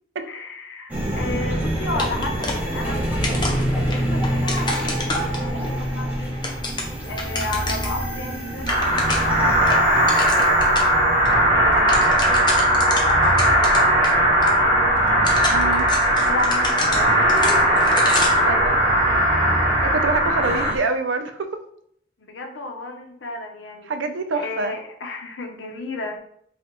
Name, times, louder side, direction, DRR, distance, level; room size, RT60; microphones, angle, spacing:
voice 1, 0.3-6.3 7.0-10.5 11.3-14.9 16.2-17.3 18.3-18.8 19.1-19.9 20.3-20.7 22.2-23.9 24.3-26.3, left 2 dB, 75° left, 3 dB, 0.8 m, -33 dB
sound 1, 0.9-20.8, equal, 10° right, 0.9 m, -28 dB
sound 2, 2.0-3.0 3.2-5.7 6.2-8.0 8.3-8.4 8.6-9.4 9.7-10.9 11.2-11.3 11.6-14.1 14.4-14.5 15.1-18.5, left 3 dB, 25° left, 0.6 m, -29 dB
sound 3, 8.7-20.7, right 1 dB, 60° right, 1.2 m, -18 dB
voice 2, 15.5-15.9 18.4-18.8 19.8-21.6 23.9-24.8, right 3 dB, 80° right, 8 dB, 0.5 m, -26 dB
4.9 x 2.4 x 3.0 m, 0.68 s
head